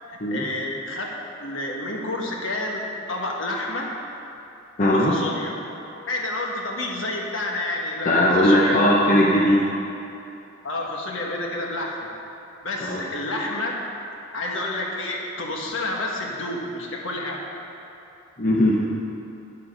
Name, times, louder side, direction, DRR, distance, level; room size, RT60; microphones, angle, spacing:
voice 1, 0.1-1.1 1.4-3.9 4.9-5.5 6.1-8.9 10.6-12.1 12.6-13.8 14.3-17.5, left 2 dB, 65° left, -1 dB, 1.4 m, -29 dB
voice 2, 4.8-5.1 8.1-9.6 12.8-13.0 18.4-18.8, left 1 dB, 40° left, -4 dB, 0.9 m, -18 dB
9.7 x 7.5 x 5.4 m, 2.9 s
head